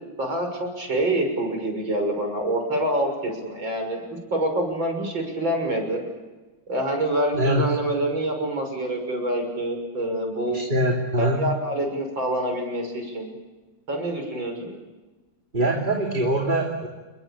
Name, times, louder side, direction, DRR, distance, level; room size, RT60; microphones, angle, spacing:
voice 1, 0.2-4.0 4.3-6.0 6.7-10.6 11.2-13.3 13.9-14.8, right 1 dB, 60° right, 4 dB, 7.1 m, -26 dB
voice 2, 7.3-7.7 10.5-11.4 15.5-16.9, right 1 dB, 20° right, 1 dB, 3.0 m, -23 dB
29.5 x 22.0 x 8.7 m, 1.2 s
omnidirectional pair, 2.3 m